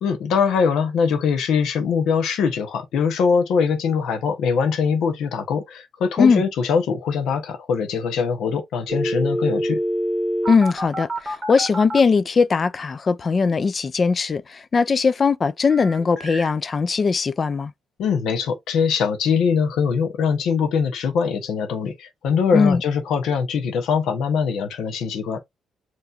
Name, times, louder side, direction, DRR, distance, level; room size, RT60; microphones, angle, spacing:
voice 1, 0.0-9.8 18.0-25.4, left 6 dB, 80° left, 1.1 m, -22 dB
sound 1, 8.9-12.0 15.7-16.5, right 1 dB, 15° right, 1.7 m, -26 dB
voice 2, 10.5-17.7 22.5-22.8, left 5 dB, 40° left, 0.4 m, -19 dB
5.5 x 3.2 x 2.6 m
cardioid pair, 90°, 0 cm